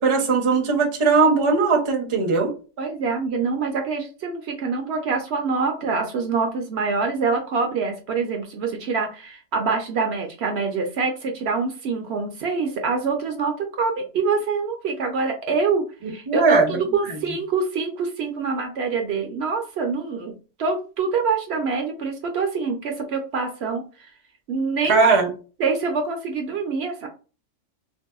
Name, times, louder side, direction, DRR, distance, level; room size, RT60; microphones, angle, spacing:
voice 1, 0.0-2.5 16.3-16.7 17.1-17.2 24.9-25.3, right 4 dB, 35° right, 2 dB, 0.5 m, -19 dB
voice 2, 2.8-20.3 20.6-23.8 24.5-25.0 25.6-27.1, right 4 dB, 65° right, 4 dB, 0.8 m, -25 dB
3.2 x 2.6 x 2.2 m, 0.35 s
omnidirectional pair, 1.3 m